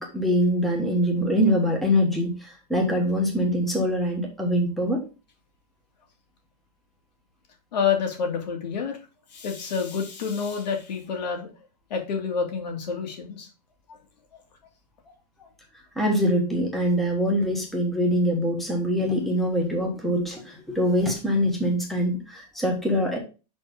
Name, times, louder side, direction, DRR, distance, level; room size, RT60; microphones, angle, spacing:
voice 1, 0.0-5.0 15.9-23.2, equal, ahead, 0 dB, 1.1 m, -24 dB
voice 2, 7.7-9.0 9.3-11.5 11.9-13.5 13.9-14.0 15.1-15.2 15.4-15.5, left 6 dB, 85° left, 3 dB, 2.4 m, -28 dB
5.7 x 4.3 x 5.1 m, 0.32 s
supercardioid pair, 170°, 21 cm